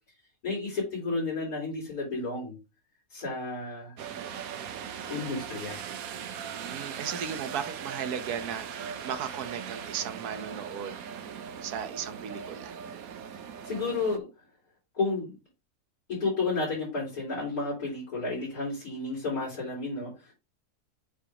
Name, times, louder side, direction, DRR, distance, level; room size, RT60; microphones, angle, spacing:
voice 1, 0.4-2.6 3.1-4.0 5.1-5.8 13.4-14.3 14.9-15.3 16.1-20.3, left 3 dB, 80° left, 4.4 m, -32 dB
sound 1, 4.0-14.2, right 7 dB, 70° right, 1.2 m, -39 dB
voice 2, 6.6-11.1 11.6-12.8, right 8 dB, 85° right, 1.3 m, -36 dB
8.0 x 2.9 x 4.9 m
omnidirectional pair, 1.6 m